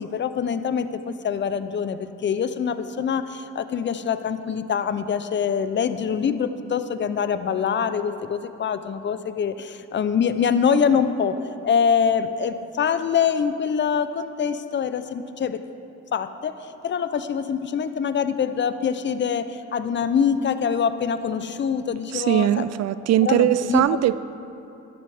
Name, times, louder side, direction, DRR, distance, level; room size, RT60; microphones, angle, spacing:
voice 1, 0.0-11.3 11.6-15.6 16.1-16.6 16.8-22.6 23.2-23.9, left 7 dB, 40° left, 11 dB, 0.6 m, -24 dB
voice 2, 22.1-24.2, right 12 dB, 60° right, 16 dB, 0.4 m, -20 dB
13.0 x 11.0 x 3.5 m, 2.8 s
cardioid pair, 90°, 30 cm